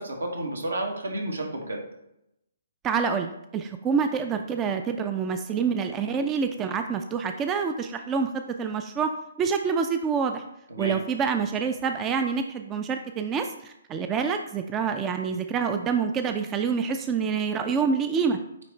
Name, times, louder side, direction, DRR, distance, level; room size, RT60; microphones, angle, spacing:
voice 1, 0.0-1.8 10.7-11.0, right 1 dB, 80° right, 1 dB, 1.4 m, -31 dB
voice 2, 2.8-8.3 8.6-9.1 9.4-10.4 10.8-18.4, right 6 dB, 20° right, 7 dB, 0.4 m, -27 dB
9.0 x 3.1 x 3.3 m, 0.83 s
figure-of-eight pair, 130°, 0 cm